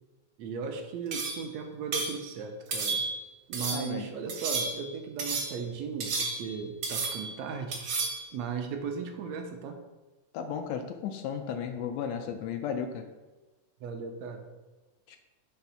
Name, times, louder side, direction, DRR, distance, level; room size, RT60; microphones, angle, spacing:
voice 1, 0.4-3.0 3.5-7.8 8.3-9.8 13.8-14.5, right 6 dB, 75° right, 5 dB, 1.7 m, -36 dB
sound 1, 1.1-1.5 1.9-2.2 2.7-3.2 3.5-3.9 4.3-4.9 5.2-5.6 6.0-6.6 6.8-7.4 7.7-8.2, right 3 dB, 55° right, 1.2 m, -32 dB
voice 2, 3.7-4.1 10.3-13.1 15.1-15.2, left 7 dB, 80° left, 7 dB, 1.6 m, -34 dB
5.9 x 3.5 x 5.6 m, 1.2 s
omnidirectional pair, 3.4 m